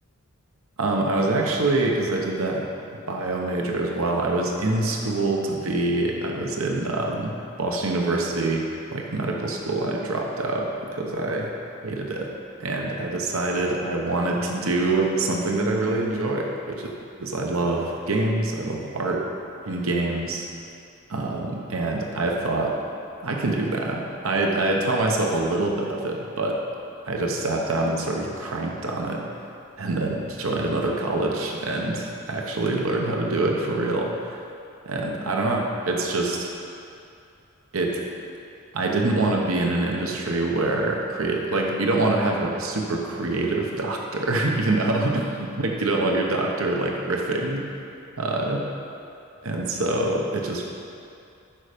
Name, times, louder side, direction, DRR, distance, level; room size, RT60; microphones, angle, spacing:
voice 1, 0.8-2.7 3.1-11.5 11.8-12.3 12.6-16.9 17.2-19.3 19.7-20.5 21.1-22.8 23.2-26.6 27.1-29.3 29.8-34.4 34.9-36.5 37.7-38.0 38.7-47.6 48.2-48.6 49.4-50.7, right 2 dB, 75° right, 0 dB, 1.0 m, -25 dB
8.8 x 6.4 x 5.1 m, 2.6 s
head